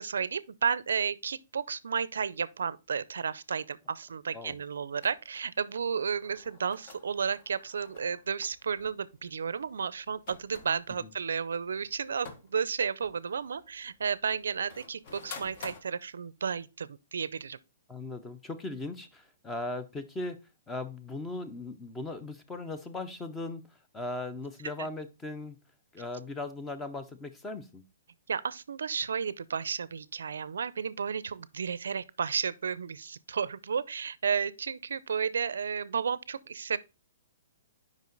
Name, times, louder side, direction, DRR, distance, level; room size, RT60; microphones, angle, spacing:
voice 1, 0.0-17.6 28.3-36.8, right 6 dB, 85° right, 0.4 m, -32 dB
sound 1, 5.0-5.4 6.2-12.5 13.0-15.8, left 4 dB, 45° left, 1.2 m, -50 dB
voice 2, 17.9-20.4 20.7-25.6 25.9-27.8, left 2 dB, 10° left, 0.7 m, -38 dB
5.2 x 5.2 x 3.9 m
hypercardioid pair, 145°, 0 cm